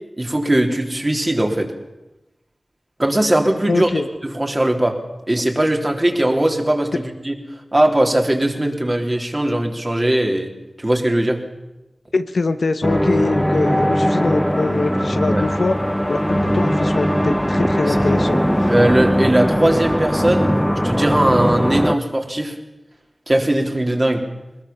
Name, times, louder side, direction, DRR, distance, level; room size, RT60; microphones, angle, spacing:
voice 1, 0.2-1.7 3.0-3.9 4.2-5.0 5.3-7.4 7.7-10.5 10.8-11.4 15.3-15.4 17.8-18.1 18.7-20.5 20.8-22.6 23.3-24.2, right 1 dB, 30° right, 2 dB, 3.6 m, -19 dB
voice 2, 3.7-4.1 12.1-15.8 16.1-18.7, left 3 dB, 80° left, 9 dB, 1.2 m, -23 dB
sound 1, 12.8-21.9, equal, 5° left, 0.8 m, -19 dB
22.0 x 20.5 x 7.2 m, 0.98 s
wide cardioid pair, 50°, 0 cm